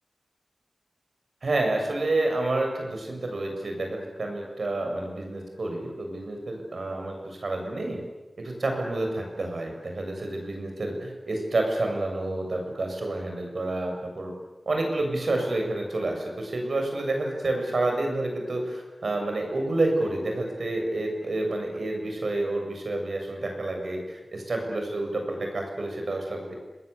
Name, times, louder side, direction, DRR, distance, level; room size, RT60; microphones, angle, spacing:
voice 1, 1.4-8.0 8.4-14.3 14.7-26.5, right 2 dB, 70° right, 2 dB, 7.3 m, -29 dB
29.0 x 20.5 x 8.5 m, 1.1 s
wide cardioid pair, 70°, 0 cm